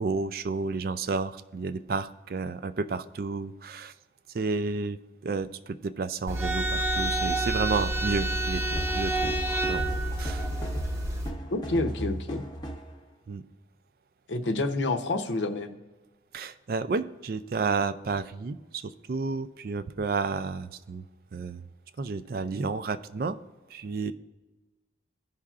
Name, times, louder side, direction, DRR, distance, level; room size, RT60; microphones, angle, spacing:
voice 1, 0.0-3.9 4.3-5.0 5.2-9.3 9.7-10.5 13.3-13.4 16.3-21.0 21.3-21.6 22.0-23.4 23.7-24.1, right 4 dB, 50° right, 12 dB, 0.4 m, -31 dB
sound 1, 6.3-11.3, right 1 dB, 15° right, 0.7 m, -28 dB
sound 2, 8.7-13.0, right 1 dB, 25° left, 0.7 m, -37 dB
voice 2, 11.5-12.4 14.3-15.7, left 2 dB, 80° left, 5 dB, 0.7 m, -28 dB
16.0 x 5.6 x 2.4 m, 1.2 s
head